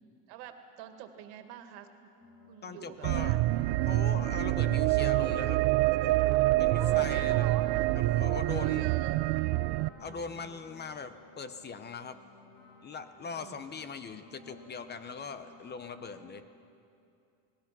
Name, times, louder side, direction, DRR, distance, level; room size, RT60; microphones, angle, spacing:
voice 1, 0.3-2.1 2.5-3.4 6.7-7.6 8.6-9.2 10.0-10.5 13.4-13.6, right 11 dB, 90° right, 7 dB, 2.1 m, -46 dB
sound 1, 2.2-16.3, left 2 dB, 55° left, 5.8 m, -56 dB
voice 2, 2.6-3.4 3.9-5.6 6.6-7.5 8.0-8.9 10.0-12.2 12.8-16.4, left 5 dB, 25° left, 11 dB, 0.7 m, -41 dB
sound 2, 3.0-9.9, right 18 dB, 75° right, 0.6 m, -26 dB
sound 3, 3.4-9.9, right 5 dB, 30° right, 2.0 m, -52 dB
29.0 x 19.5 x 6.0 m, 2.5 s
cardioid pair, 165°, 43 cm